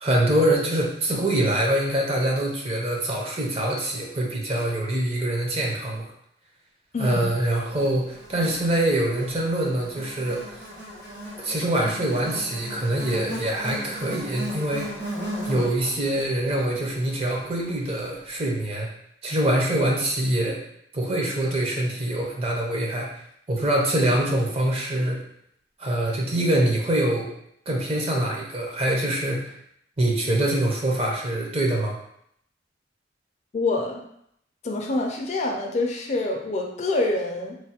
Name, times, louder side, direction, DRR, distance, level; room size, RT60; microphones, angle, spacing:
voice 1, 0.0-6.1 7.0-10.4 11.4-14.9 15.5-18.9 19.2-20.6 20.9-23.1 23.5-25.2 25.8-27.3 27.7-29.5 30.0-32.0, right 1 dB, 35° right, -1 dB, 0.6 m, -24 dB
voice 2, 6.9-7.3 33.5-34.0 34.6-37.6, left 2 dB, 40° left, 1 dB, 0.4 m, -26 dB
Buzz, 7.7-18.1, equal, 50° right, 1.2 m, -37 dB
3.1 x 2.1 x 2.8 m, 0.73 s
head